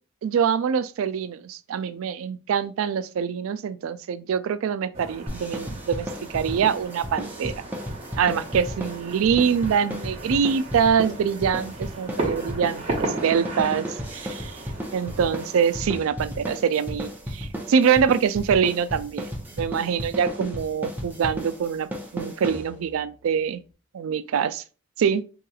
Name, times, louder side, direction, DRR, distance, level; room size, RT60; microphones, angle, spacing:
voice 1, 0.2-7.5 8.2-14.5 14.9-19.3 19.6-23.6 23.9-24.6 25.0-25.2, right 7 dB, 70° right, 0.3 m, -24 dB
sound 1, 4.9-15.8, right 2 dB, 30° right, 0.9 m, -36 dB
sound 2, 5.3-23.0, equal, 10° right, 0.5 m, -34 dB
3.8 x 2.9 x 2.3 m
head